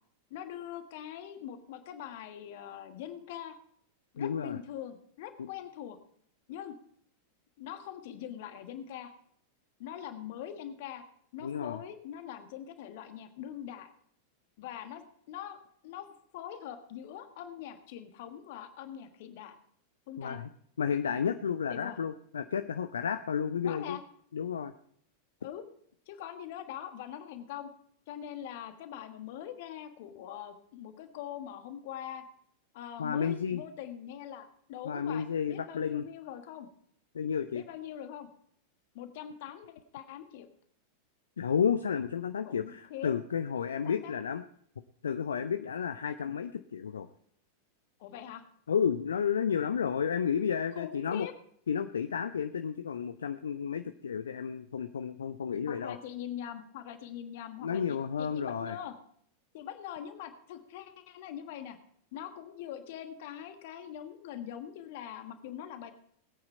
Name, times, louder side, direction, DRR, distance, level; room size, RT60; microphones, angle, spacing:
voice 1, 0.3-3.6 4.1-6.0 6.5-6.7 7.6-9.1 9.8-11.0 11.3-13.9 14.6-15.6 15.8-16.1 16.3-19.5 20.1-20.4 21.7-22.0 23.6-24.0 25.4-25.6 26.1-27.7 28.1-32.2 32.7-36.7 37.5-38.3 38.9-40.5 42.4-43.1 43.7-44.3 48.0-48.4 50.7-51.3 55.7-59.0 59.5-61.8 62.1-65.9, left 10 dB, 50° left, 8 dB, 1.5 m, -43 dB
voice 2, 4.2-4.6 5.4-5.5 11.4-11.8 20.2-20.5 20.8-24.0 24.3-24.7 33.0-33.6 34.8-36.0 37.1-37.6 41.4-44.4 45.0-47.1 48.7-51.3 51.7-56.0 57.6-58.8, left 7 dB, 70° left, 10 dB, 0.5 m, -32 dB
19.5 x 8.7 x 4.4 m, 0.65 s
figure-of-eight pair, 90°, 0 cm